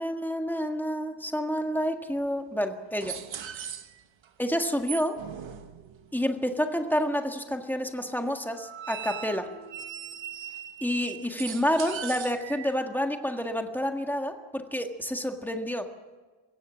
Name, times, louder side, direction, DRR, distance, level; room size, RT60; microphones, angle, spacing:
voice 1, 0.0-3.2 4.4-5.2 6.1-9.5 10.8-15.9, equal, 5° left, 4 dB, 1.7 m, -29 dB
sound 1, 2.2-2.3 3.0-4.3 4.8-6.2 8.5-12.7, right 9 dB, 80° right, 1.3 m, -40 dB
28.0 x 16.5 x 6.3 m, 1.4 s
wide cardioid pair, 175°, 46 cm